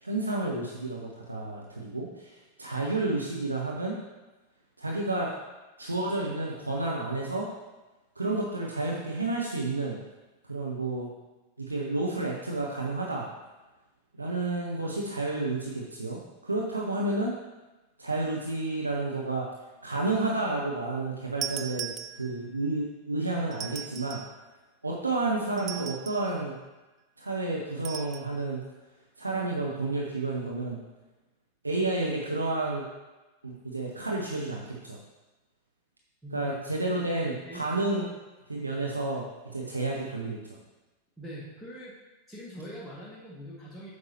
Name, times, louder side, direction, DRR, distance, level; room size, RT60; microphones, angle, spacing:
voice 1, 0.0-4.0 4.8-5.3 5.8-7.5 8.2-10.0 10.5-11.1 11.6-13.2 14.1-17.3 18.0-19.5 19.8-24.2 24.8-26.5 27.2-28.6 29.2-30.8 31.6-32.8 33.4-34.7 36.3-38.1 38.5-39.2 39.5-40.4, right 2 dB, 80° right, -2 dB, 0.9 m, -30 dB
sound 1, 21.4-22.6 23.5-24.4 25.6-26.3 27.8-28.3, right 11 dB, 30° right, 0.4 m, -38 dB
voice 2, 36.2-36.5 37.4-37.6 41.2-41.9 42.3-43.9, equal, ahead, -8 dB, 1.6 m, -42 dB
8.5 x 6.5 x 2.9 m, 1.1 s
figure-of-eight pair, 90°, 0 cm